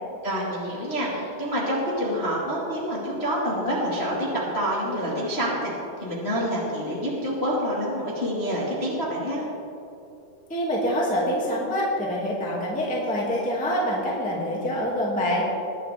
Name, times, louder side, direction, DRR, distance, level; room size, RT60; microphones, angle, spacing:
voice 1, 0.2-5.7 6.0-9.4, equal, 20° left, -6 dB, 1.7 m, -27 dB
voice 2, 10.5-15.4, equal, 5° left, -4 dB, 1.7 m, -25 dB
21.0 x 11.0 x 3.7 m, 2.8 s
omnidirectional pair, 4.5 m